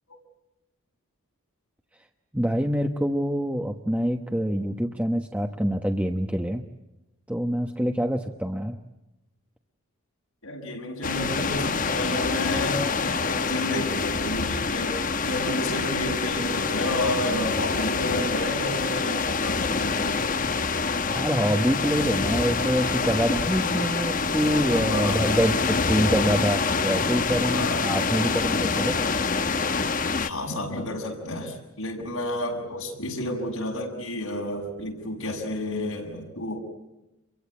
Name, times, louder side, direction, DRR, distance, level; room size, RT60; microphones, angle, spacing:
voice 1, 2.3-6.6 7.3-8.8 21.1-29.1, equal, 5° right, 3 dB, 1.2 m, -26 dB
voice 2, 10.4-15.0 15.2-20.2 24.7-25.3 27.5-27.9 30.2-36.6, left 1 dB, 80° left, 2 dB, 7.1 m, -31 dB
sound 1, 11.0-30.3, left 4 dB, 40° left, 1.0 m, -26 dB
29.5 x 23.5 x 8.5 m, 0.95 s
head